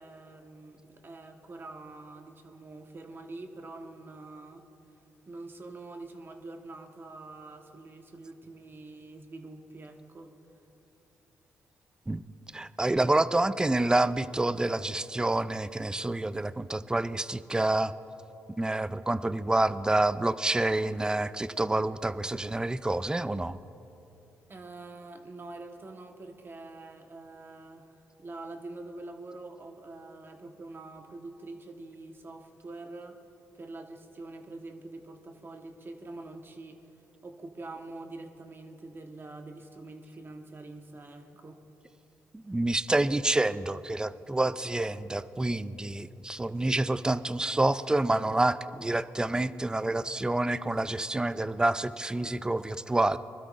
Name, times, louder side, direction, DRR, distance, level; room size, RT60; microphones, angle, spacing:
voice 1, 0.0-4.6 5.3-10.3 24.5-33.2 33.5-36.8 37.2-41.6, right 2 dB, 40° right, 4 dB, 1.3 m, -45 dB
voice 2, 12.5-17.9 18.6-23.6 42.3-53.2, right 2 dB, 15° right, 14 dB, 0.4 m, -28 dB
24.0 x 12.5 x 2.6 m, 3.0 s
supercardioid pair, 65°, 6 cm